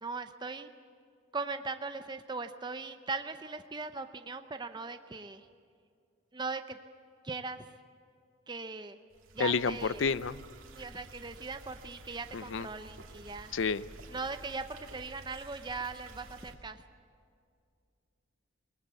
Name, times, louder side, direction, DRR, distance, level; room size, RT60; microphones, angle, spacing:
voice 1, 0.0-0.7 1.3-5.5 6.3-6.8 7.2-7.7 8.5-9.0 9.3-10.1 10.8-13.5 14.1-16.8, right 4 dB, 20° right, 8 dB, 0.7 m, -39 dB
sound 1, 9.1-16.6, right 2 dB, 75° right, 2.5 m, -51 dB
voice 2, 9.4-10.4 12.3-12.7 13.5-13.8, left 5 dB, 65° left, 17 dB, 0.5 m, -30 dB
21.5 x 20.0 x 8.3 m, 2.4 s
head